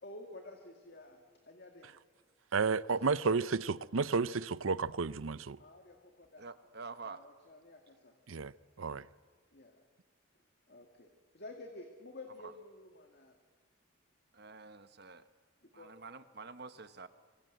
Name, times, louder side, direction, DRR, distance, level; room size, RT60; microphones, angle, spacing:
voice 1, 0.0-1.9 2.9-3.5 5.6-6.4 7.0-8.2 9.5-9.9 10.7-13.4 15.7-15.9, left 2 dB, 50° left, 2.2 m, -51 dB
voice 2, 2.5-5.6 8.3-8.5 8.8-9.1, right 4 dB, 80° right, 0.7 m, -32 dB
voice 3, 6.4-7.3 12.4-12.5 14.3-15.2 15.7-17.1, right 4 dB, 55° right, 1.3 m, -48 dB
26.0 x 24.5 x 8.0 m
head